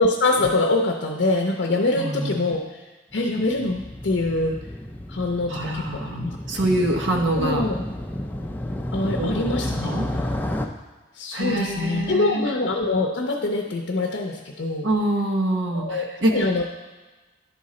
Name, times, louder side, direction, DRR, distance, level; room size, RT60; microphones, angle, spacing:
voice 1, 0.0-2.6 3.1-4.6 5.1-6.3 6.6-6.7 7.4-7.8 8.9-9.9 11.2-14.9 15.7-16.0 16.3-16.6, left 2 dB, 65° left, 2 dB, 0.6 m, -24 dB
voice 2, 2.0-2.5 5.5-7.6 9.2-9.3 9.6-10.1 11.3-12.4 14.8-16.5, right 1 dB, 75° right, 2 dB, 1.0 m, -25 dB
Motorcycle, 3.1-10.7, left 1 dB, 10° left, 0.4 m, -31 dB
10.0 x 3.8 x 4.2 m, 1.2 s
head